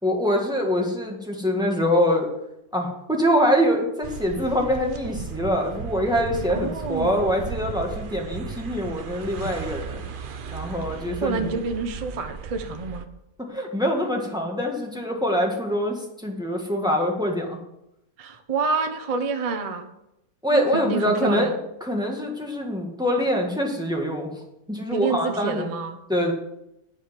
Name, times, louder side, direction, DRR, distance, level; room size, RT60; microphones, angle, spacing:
voice 1, 0.0-2.3 2.7-10.0 10.5-11.5 13.4-17.6 20.4-24.3 24.7-25.7 26.1-26.3, equal, 5° right, 0 dB, 1.5 m, -24 dB
sound 1, 4.0-13.1, right 6 dB, 75° right, 0.4 m, -36 dB
voice 2, 6.6-7.2 11.2-13.1 18.2-19.9 20.5-21.5 24.9-26.0, right 4 dB, 35° right, 6 dB, 0.6 m, -28 dB
10.0 x 5.1 x 7.5 m, 0.85 s
omnidirectional pair, 1.8 m